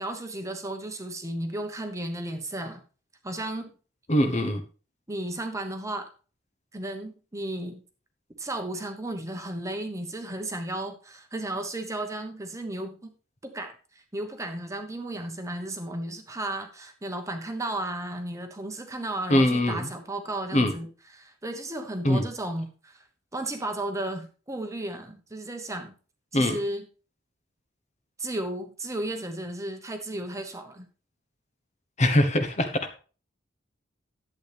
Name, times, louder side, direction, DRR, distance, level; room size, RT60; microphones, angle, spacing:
voice 1, 0.0-2.8 3.2-3.7 5.1-6.1 6.7-7.8 8.4-13.1 13.4-23.0 23.3-26.0 26.3-26.9 28.2-30.9, right 1 dB, 15° right, 5 dB, 1.1 m, -34 dB
voice 2, 4.1-4.6 19.3-19.9 20.5-20.7 22.0-22.2 26.3-26.6 32.0-33.0, left 1 dB, 35° left, 8 dB, 1.1 m, -22 dB
11.5 x 8.2 x 3.4 m, 0.37 s
head